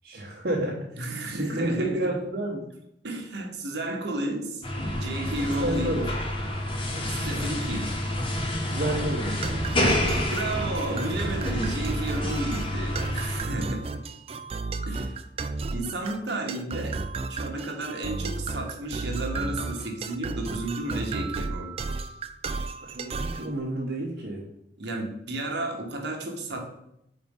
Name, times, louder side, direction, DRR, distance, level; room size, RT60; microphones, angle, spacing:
voice 1, 0.0-2.6 5.5-6.1 8.6-9.4 22.8-24.5, right 1 dB, 55° right, -6 dB, 1.2 m, -30 dB
voice 2, 1.0-2.1 3.0-4.6 4.9-6.0 7.1-8.0 10.2-14.0 14.9-15.1 15.7-16.9 17.3-22.0 24.8-26.7, right 2 dB, 75° right, 2 dB, 1.1 m, -32 dB
sound 1, 4.6-13.4, left 1 dB, 30° left, 0.8 m, -29 dB
sound 2, 9.4-23.5, right 3 dB, 30° right, 0.3 m, -33 dB
4.3 x 4.1 x 5.3 m, 0.78 s
head